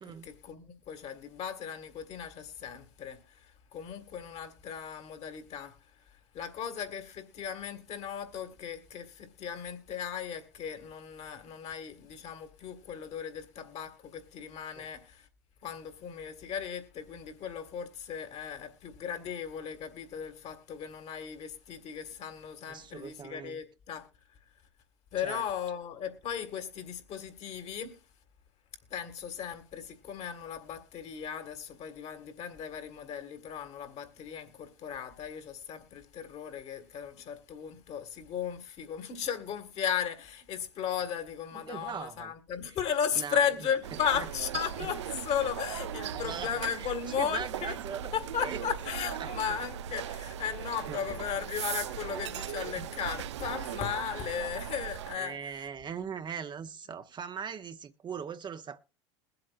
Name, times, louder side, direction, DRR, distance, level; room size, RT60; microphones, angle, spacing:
voice 1, 0.0-5.8 6.3-15.3 15.6-24.1 25.1-28.0 28.9-47.8 48.1-55.5, left 8 dB, 45° left, 1.9 m, -36 dB
voice 2, 22.7-23.6 25.2-25.4 41.5-42.3 43.2-43.5 44.1-44.3 44.8-44.9 46.1-48.1 48.4-48.6 49.2-49.3 50.9-51.0 52.7-52.9 55.1-58.9, right 7 dB, 30° right, 0.8 m, -40 dB
sound 1, 43.8-55.2, right 9 dB, 80° right, 0.5 m, -38 dB
21.5 x 7.8 x 2.4 m
hypercardioid pair, 75°, 15 cm